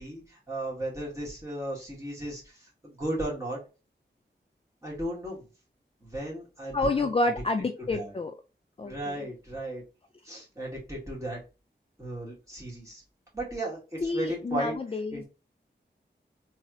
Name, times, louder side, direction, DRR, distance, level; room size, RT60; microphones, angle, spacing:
voice 1, 0.0-3.6 4.8-5.5 6.0-7.1 7.8-8.1 8.8-9.8 10.2-11.4 12.0-13.0 13.3-14.7 15.1-15.3, right 1 dB, 15° right, -5 dB, 2.2 m, -35 dB
voice 2, 6.7-8.3 8.8-9.2 14.0-15.2, left 2 dB, 30° left, 5 dB, 0.4 m, -29 dB
3.9 x 3.1 x 2.5 m, 0.31 s
wide cardioid pair, 80°, 19 cm